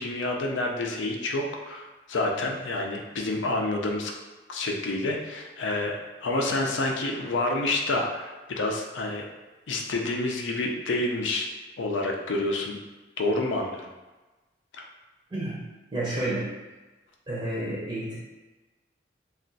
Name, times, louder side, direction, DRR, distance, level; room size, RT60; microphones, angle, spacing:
voice 1, 0.0-4.1 4.5-6.0 6.2-9.3 9.7-11.5 11.8-12.8 13.2-13.9 14.7-14.8, left 2 dB, 85° left, 1 dB, 0.5 m, -28 dB
voice 2, 15.3-15.6 15.9-16.5 17.3-18.2, right 1 dB, 25° right, -6 dB, 0.6 m, -30 dB
2.4 x 2.3 x 3.8 m, 1.2 s
head